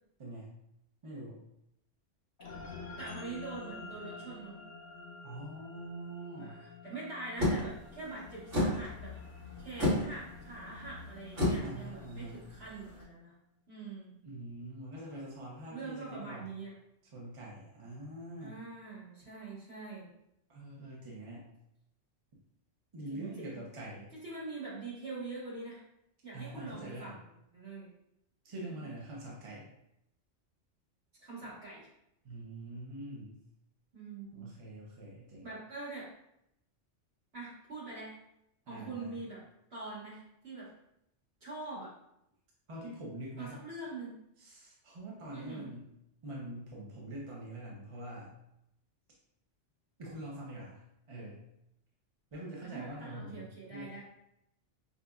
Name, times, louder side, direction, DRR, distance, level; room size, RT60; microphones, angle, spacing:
voice 1, 0.2-0.5 1.0-1.4 5.2-6.6 11.6-12.4 14.2-16.5 17.1-18.6 20.5-21.5 22.9-24.1 26.3-27.2 28.4-29.6 32.2-33.4 34.3-35.5 38.7-39.2 42.7-43.6 44.4-45.9 46.2-48.4 50.0-51.4 52.3-54.0, right 1 dB, 35° right, -4 dB, 0.6 m, -44 dB
sound 1, 2.4-13.0, left 4 dB, 50° left, 0.7 m, -50 dB
voice 2, 3.0-4.6 6.4-9.1 9.6-13.3 13.7-14.2 15.7-16.7 18.4-20.1 23.1-23.6 24.1-25.8 26.2-27.9 28.7-28.8 31.2-31.9 33.9-34.5 35.4-36.1 37.3-38.1 38.7-39.4 39.7-40.7 41.4-41.9 43.4-44.2 45.3-45.7 52.6-54.0, right 3 dB, 55° right, -8 dB, 1.7 m, -44 dB
sound 2, 7.4-13.0, left 1 dB, 75° right, 1.6 m, -34 dB
5.2 x 2.4 x 2.3 m, 0.82 s
omnidirectional pair, 1.3 m